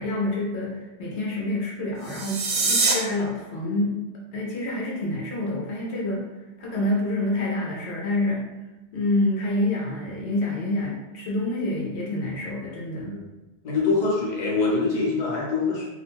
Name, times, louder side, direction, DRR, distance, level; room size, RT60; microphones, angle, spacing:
voice 1, 0.0-4.0 4.3-6.3 6.6-8.5 8.9-13.2, left 1 dB, 80° left, -3 dB, 0.9 m, -27 dB
sound 1, 2.0-2.9, right 4 dB, 75° right, 0.8 m, -23 dB
voice 2, 13.0-13.3 13.6-15.9, left 3 dB, 45° left, -4 dB, 0.8 m, -24 dB
2.5 x 2.1 x 2.9 m, 1.1 s
omnidirectional pair, 1.1 m